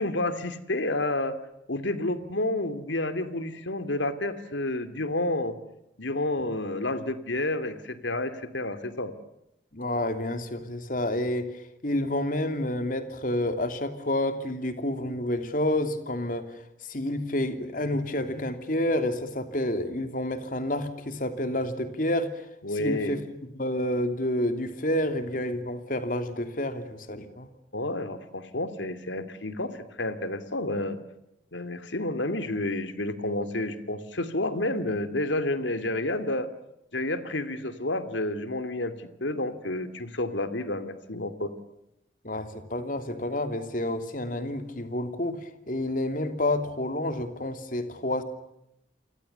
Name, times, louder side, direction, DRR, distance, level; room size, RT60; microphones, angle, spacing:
voice 1, 0.0-1.4 1.7-5.6 6.0-9.1 22.6-23.2 27.7-31.0 31.5-36.5 36.9-41.5, left 2 dB, 90° left, 11 dB, 2.7 m, -30 dB
voice 2, 9.7-11.5 11.8-16.4 16.9-22.3 22.8-23.2 23.5-27.5 42.2-48.2, left 1 dB, 45° left, 8 dB, 3.0 m, -29 dB
29.5 x 24.5 x 6.9 m, 0.84 s
head